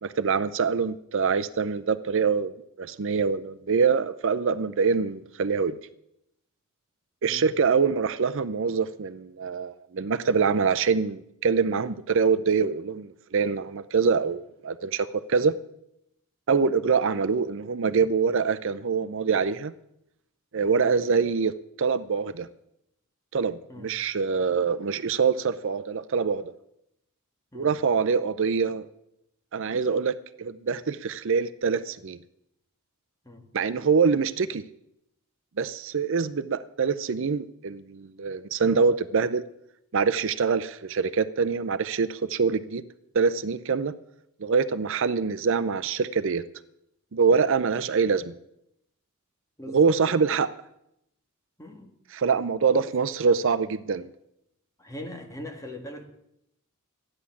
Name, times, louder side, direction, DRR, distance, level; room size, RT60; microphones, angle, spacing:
voice 1, 0.0-2.5 2.8-5.8 7.2-15.6 16.5-19.7 20.5-21.5 21.8-22.5 23.3-26.4 27.5-28.9 29.5-32.2 33.5-34.6 35.6-39.4 39.9-42.8 43.1-43.9 44.4-46.4 47.1-48.3 49.7-50.5 52.1-54.1, right 5 dB, 65° right, 14 dB, 0.6 m, -24 dB
voice 2, 20.8-21.1 23.7-23.9 27.5-27.8 33.2-33.4 49.6-50.0 51.6-51.9 52.7-52.8 54.8-56.1, left 1 dB, 15° left, 3 dB, 1.8 m, -41 dB
13.5 x 9.9 x 7.1 m, 0.80 s
head